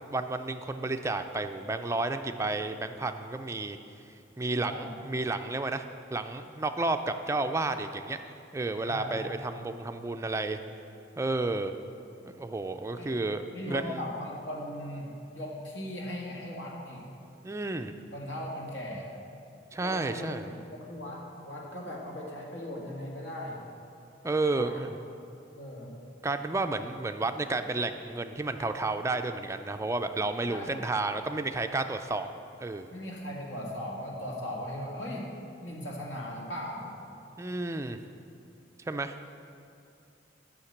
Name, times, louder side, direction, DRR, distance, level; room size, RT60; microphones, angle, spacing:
voice 1, 0.0-3.8 4.4-5.9 6.1-8.2 8.5-10.6 11.2-11.7 12.2-14.0 17.4-17.9 19.7-20.5 24.2-24.9 26.2-32.3 32.6-32.9 37.4-38.0 38.9-39.2, right 2 dB, 15° right, 7 dB, 0.3 m, -31 dB
voice 2, 4.6-4.9 8.8-9.2 13.0-13.1 13.5-17.1 18.1-19.1 19.8-23.6 24.6-24.8 25.6-25.9 30.5-30.8 32.9-35.3 35.6-36.9, left 1 dB, 70° left, -2 dB, 1.8 m, -38 dB
8.7 x 5.8 x 7.9 m, 2.6 s
head